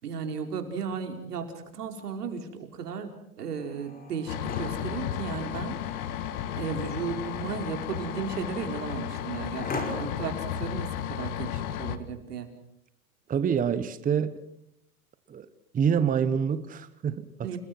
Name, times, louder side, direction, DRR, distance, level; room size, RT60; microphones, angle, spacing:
voice 1, 0.0-3.1 3.4-5.8 6.6-12.5 17.4-17.6, right 6 dB, 90° right, 4.7 m, -35 dB
sound 1, 3.6-10.4, left 3 dB, 20° left, 5.4 m, -41 dB
sound 2, 4.3-12.0, left 10 dB, 65° left, 2.0 m, -34 dB
voice 2, 13.3-14.4 15.3-15.5 15.7-17.6, right 7 dB, 20° right, 1.1 m, -26 dB
29.5 x 20.0 x 6.1 m
hypercardioid pair, 125°, 45 cm